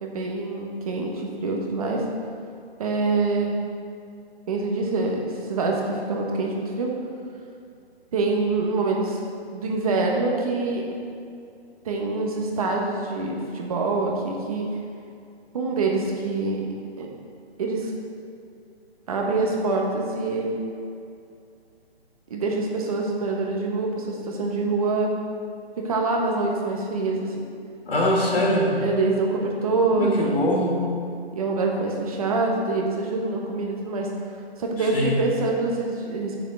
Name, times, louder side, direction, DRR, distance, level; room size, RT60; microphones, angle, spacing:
voice 1, 0.0-2.0 2.8-3.6 4.5-6.9 8.1-9.2 9.5-10.8 11.8-14.7 15.5-16.6 17.0-17.1 17.6-17.9 19.1-20.5 22.3-25.1 25.8-27.3 28.8-30.5 31.3-34.1 34.6-36.4, right 3 dB, 35° right, 0 dB, 1.3 m, -25 dB
voice 2, 27.8-28.8 29.9-30.9 34.8-35.2, equal, 65° left, -3 dB, 2.5 m, -23 dB
7.2 x 6.7 x 6.3 m, 2.4 s
hypercardioid pair, 160°, 33 cm